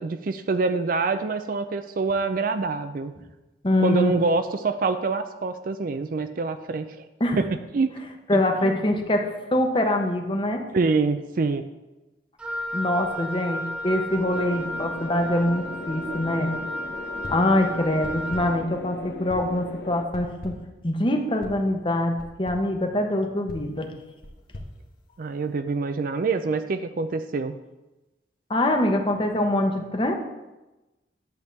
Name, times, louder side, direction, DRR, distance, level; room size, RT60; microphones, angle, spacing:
voice 1, 0.0-3.1 3.8-6.9 7.4-7.9 8.3-8.8 10.7-11.6 25.2-27.6, right 4 dB, 50° right, 10 dB, 0.4 m, -26 dB
voice 2, 3.6-4.1 7.2-7.4 8.3-10.6 12.7-16.6 17.3-23.9 28.5-30.1, left 1 dB, 30° left, 3 dB, 0.9 m, -24 dB
Wind instrument woodwind instrument, 12.4-18.6, equal, 5° right, 0.6 m, -33 dB
sound 1, 14.2-20.1, left 2 dB, 75° left, 0.7 m, -38 dB
sound 2, 17.2-17.6 18.0-18.7 19.3-19.7 20.1-20.8 21.4-21.7 22.2-22.7 23.5-25.5, left 1 dB, 55° left, 1.2 m, -42 dB
11.0 x 3.6 x 7.2 m, 1.1 s
head